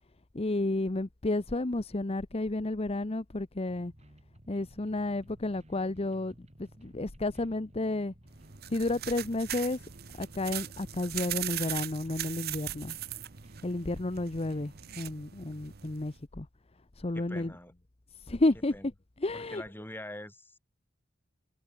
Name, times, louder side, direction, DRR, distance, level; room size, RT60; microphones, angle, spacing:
voice 1, 0.3-3.9 4.5-8.1 8.7-9.9 10.2-12.9 13.6-16.5 17.0-17.5 18.1-18.9 19.2-19.6, left 2 dB, 30° left, 0.9 m, -31 dB
sound 1, 3.7-14.8, equal, 35° right, 3.4 m, -56 dB
sound 2, 8.3-16.2, right 12 dB, 55° right, 0.9 m, -40 dB
voice 2, 17.1-17.7 18.7-18.9 19.3-20.6, left 1 dB, 10° left, 4.0 m, -44 dB
head